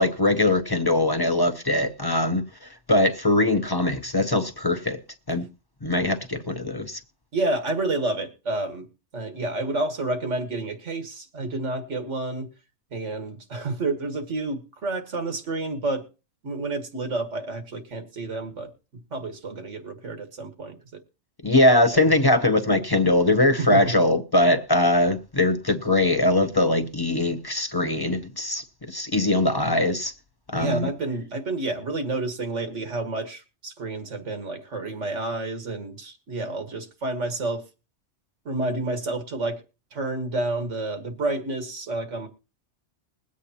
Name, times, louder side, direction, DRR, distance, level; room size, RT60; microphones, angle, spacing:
voice 1, 0.0-2.4 2.9-5.0 5.3-5.5 5.8-7.0 21.4-30.1 30.5-30.9, left 1 dB, 25° left, 0.6 m, -21 dB
voice 2, 7.3-8.9 9.1-12.5 12.9-16.0 16.4-18.7 19.1-21.0 23.6-23.8 30.6-37.6 38.5-39.6 39.9-42.3, right 2 dB, 85° right, 1.9 m, -29 dB
21.5 x 8.3 x 2.9 m
omnidirectional pair, 1.2 m